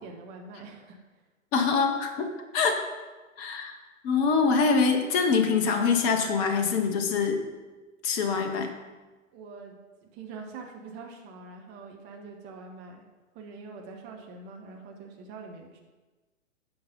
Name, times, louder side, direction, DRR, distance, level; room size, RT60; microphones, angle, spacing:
voice 1, 0.0-1.2 9.3-9.8 10.1-13.0 13.3-15.8, right 4 dB, 25° right, 2 dB, 1.2 m, -44 dB
voice 2, 1.5-2.9 3.4-3.7 4.0-7.4 8.0-8.7, left 5 dB, 15° left, 5 dB, 0.5 m, -24 dB
8.7 x 5.4 x 5.2 m, 1.2 s
figure-of-eight pair, 115°, 39 cm